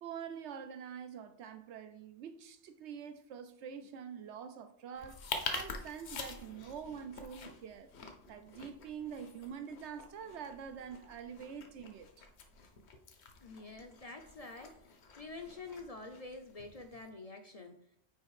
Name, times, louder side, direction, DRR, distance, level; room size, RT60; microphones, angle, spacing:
voice 1, 0.0-5.2 5.5-7.9 8.3-12.3, right 7 dB, 75° right, 0.9 m, -45 dB
sound 1, 5.0-17.1, left 4 dB, 70° left, 1.1 m, -47 dB
voice 2, 13.4-14.8 15.2-17.8, left 3 dB, 45° left, 0.6 m, -47 dB
5.7 x 4.2 x 4.8 m
omnidirectional pair, 1.2 m